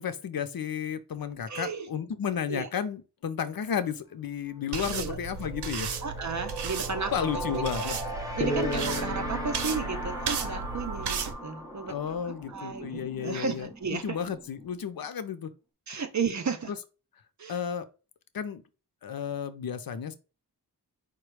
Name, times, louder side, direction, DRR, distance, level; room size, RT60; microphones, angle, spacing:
voice 1, 0.0-5.9 7.1-8.0 11.9-15.5 16.7-16.8 17.5-17.8 18.3-18.6 19.0-20.1, left 8 dB, 65° left, 0.6 m, -33 dB
voice 2, 1.5-1.9 2.5-2.7 4.9-5.2 6.0-7.9 8.4-11.9 12.3-14.2 15.9-16.7 17.4-17.6, right 5 dB, 45° right, 0.7 m, -34 dB
sound 1, 4.0-4.2 4.5-15.1, right 1 dB, 10° right, 1.1 m, -39 dB
sound 2, 4.7-11.3, right 5 dB, 85° right, 0.7 m, -35 dB
sound 3, 8.4-11.8, left 1 dB, 20° left, 0.6 m, -35 dB
5.0 x 2.2 x 4.6 m
wide cardioid pair, 120°, 39 cm